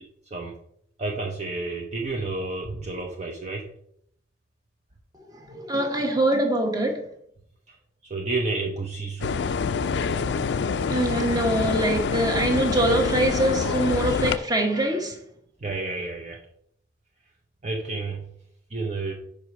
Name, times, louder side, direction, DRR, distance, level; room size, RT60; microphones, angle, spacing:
voice 1, 0.3-0.6 1.0-3.7 7.7-7.8 8.0-9.5 15.6-16.4 17.6-18.2 18.7-19.1, right 3 dB, 40° right, 0.7 m, -30 dB
voice 2, 5.1-7.1 10.9-15.2, right 1 dB, 20° right, 1.1 m, -24 dB
sound 1, 9.2-14.4, left 5 dB, 70° left, 0.4 m, -26 dB
5.0 x 4.9 x 5.8 m
head